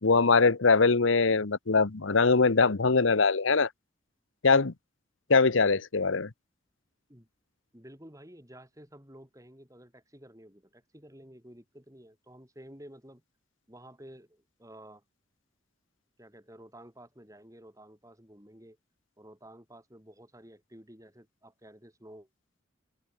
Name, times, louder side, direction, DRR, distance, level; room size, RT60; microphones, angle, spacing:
voice 1, 0.0-3.7 4.4-4.7 5.3-6.3, left 4 dB, 80° left, 1.0 m, -22 dB
voice 2, 7.7-13.2 13.7-15.0 16.2-18.8 19.2-22.3, right 1 dB, 15° right, 7.5 m, -52 dB
head